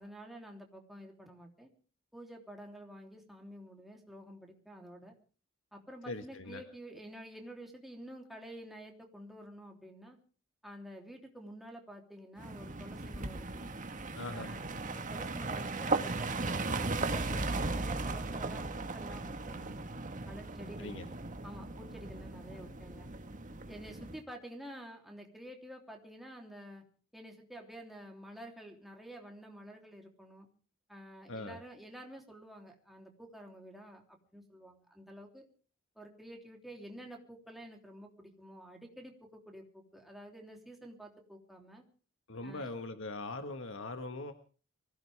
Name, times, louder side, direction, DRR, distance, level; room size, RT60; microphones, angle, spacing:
voice 1, 0.0-1.7 2.1-5.1 5.7-10.2 10.6-13.7 14.3-19.9 20.3-20.9 21.4-23.1 23.7-26.8 27.1-30.5 30.9-35.5 35.9-41.8 42.4-42.7, right 1 dB, ahead, 1 dB, 3.3 m, -50 dB
voice 2, 6.1-6.6 14.1-14.5 20.8-21.1 31.3-31.6 42.3-44.3, left 2 dB, 65° left, 7 dB, 1.7 m, -41 dB
sound 1, 12.4-24.2, right 3 dB, 40° right, 1.6 m, -37 dB
24.0 x 16.0 x 3.5 m, 0.40 s
head